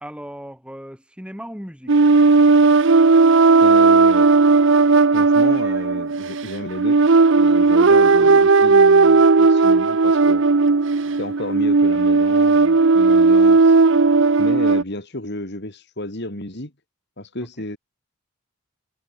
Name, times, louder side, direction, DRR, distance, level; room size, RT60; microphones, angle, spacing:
voice 1, 0.0-2.0 8.2-8.3 13.1-13.2, equal, 5° right, 7.5 m, -37 dB
sound 1, 1.9-14.8, right 4 dB, 60° right, 0.7 m, -15 dB
voice 2, 3.6-4.3 5.1-7.0 7.3-10.4 11.2-13.7 14.4-16.7 17.2-17.8, left 1 dB, 50° left, 3.4 m, -32 dB
head